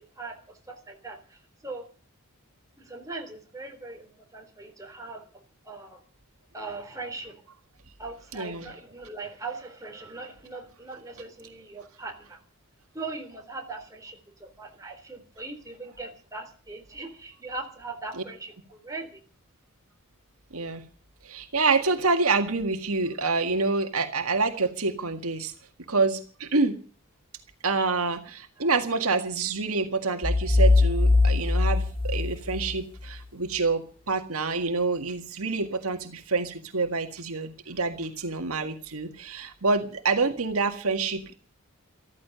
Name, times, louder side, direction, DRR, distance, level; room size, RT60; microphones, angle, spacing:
voice 1, 0.2-1.8 2.8-6.0 6.5-7.4 8.0-12.4 12.9-19.2 28.6-28.7, right 3 dB, 15° right, 2 dB, 3.7 m, -40 dB
voice 2, 8.3-8.7 18.2-18.3 20.5-20.8 21.2-25.5 25.9-26.8 27.6-41.3, right 3 dB, 75° right, 6 dB, 1.8 m, -27 dB
sound 1, 30.2-33.1, left 3 dB, 25° left, 2.2 m, -21 dB
14.5 x 14.0 x 6.8 m, 0.39 s
head